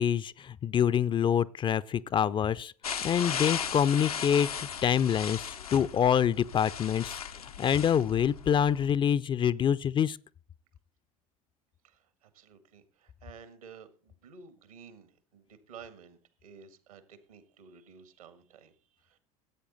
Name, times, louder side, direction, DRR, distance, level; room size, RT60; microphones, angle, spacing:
voice 1, 0.0-2.7 3.0-5.4 5.7-10.2, left 8 dB, 25° left, 0.4 m, -26 dB
sound 1, 2.8-8.9, left 7 dB, 85° left, 0.7 m, -37 dB
voice 2, 11.8-19.2, right 6 dB, 75° right, 1.5 m, -53 dB
14.5 x 8.4 x 4.0 m
figure-of-eight pair, 70°, 19 cm